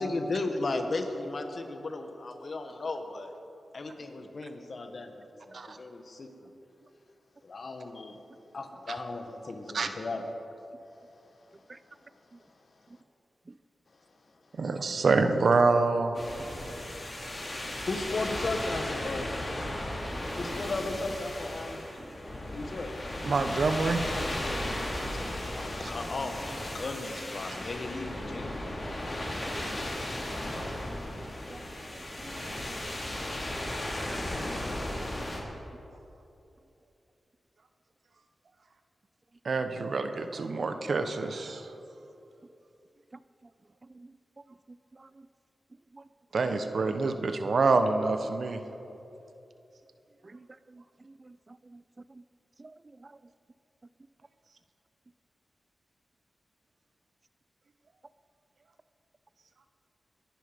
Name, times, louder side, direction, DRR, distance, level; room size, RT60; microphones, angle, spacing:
voice 1, 0.0-3.3 3.7-6.5 7.4-8.2 8.5-10.5 11.4-11.5 11.8-12.1 12.3-12.4 17.9-19.3 20.4-21.8 22.5-22.9 25.1-25.2 25.5-28.8, left 2 dB, 60° left, 6 dB, 1.7 m, -36 dB
voice 2, 14.6-16.1 23.2-24.3 39.4-41.7 46.3-48.6, right 3 dB, 70° right, 8 dB, 1.1 m, -26 dB
sound 1, 16.1-35.4, left 1 dB, 35° left, 4.0 m, -35 dB
voice 3, 31.9-32.4 32.7-32.8 34.1-34.2 40.7-40.8 43.9-44.1 45.0-45.1 45.9-46.0 47.0-47.2 50.2-51.8 52.1-52.2 52.6-52.8 53.0-53.2, right 2 dB, 40° right, 15 dB, 0.5 m, -51 dB
22.5 x 11.0 x 5.4 m, 2.8 s
cardioid pair, 50°, 0 cm